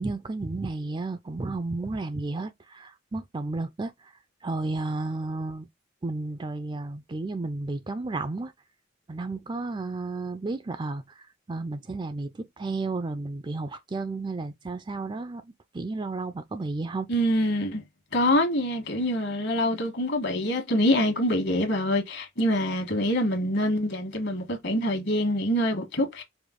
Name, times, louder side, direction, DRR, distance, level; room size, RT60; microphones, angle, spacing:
voice 1, 0.0-3.9 4.4-5.7 6.0-8.5 9.1-11.0 11.5-17.1, right 3 dB, 25° right, 0.4 m, -32 dB
voice 2, 17.1-17.8 18.1-26.2, left 1 dB, 60° left, 1.4 m, -25 dB
5.0 x 2.3 x 3.7 m
head